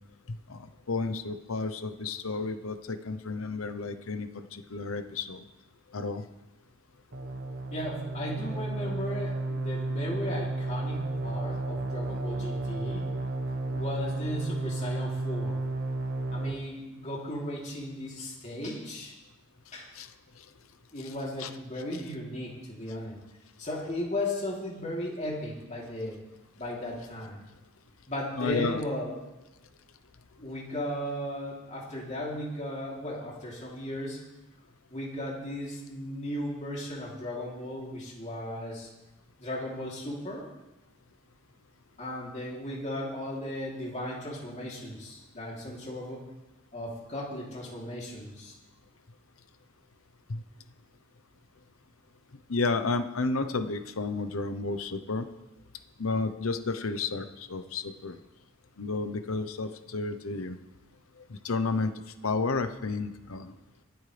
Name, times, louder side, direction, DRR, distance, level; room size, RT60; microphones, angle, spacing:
voice 1, 0.3-5.4 5.9-6.2 19.9-20.1 21.0-21.1 21.4-21.5 28.4-28.8 50.3-50.4 52.5-55.3 56.0-58.2 58.8-60.6 61.3-61.9 62.2-63.5, left 3 dB, 80° left, 10 dB, 0.9 m, -31 dB
sound 1, 7.1-16.5, right 2 dB, 55° right, 1.2 m, -32 dB
voice 2, 7.7-13.1 13.7-15.6 16.3-19.1 19.7-19.9 20.9-23.2 23.6-26.2 26.6-27.4 28.1-29.1 30.4-34.2 34.9-38.9 39.4-40.5 42.0-46.2 46.7-48.5, left 1 dB, 35° left, -4 dB, 3.2 m, -36 dB
25.5 x 8.9 x 3.4 m, 1.0 s
head